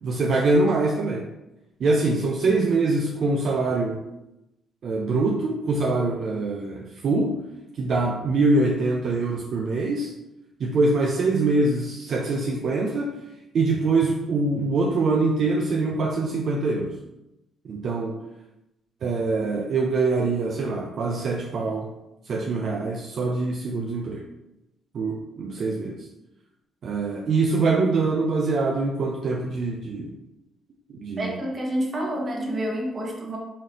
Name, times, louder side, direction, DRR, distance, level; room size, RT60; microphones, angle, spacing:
voice 1, 0.0-1.2 1.8-4.0 4.8-7.4 7.8-10.1 10.6-13.2 13.5-16.9 17.6-18.2 19.0-21.9 22.3-24.2 24.9-26.0 26.8-30.1 30.9-31.3, right 3 dB, 55° right, 0 dB, 0.5 m, -24 dB
voice 2, 31.2-33.4, right 1 dB, 35° right, -1 dB, 1.2 m, -28 dB
4.2 x 3.2 x 3.7 m, 0.92 s
cardioid pair, 90°, 0 cm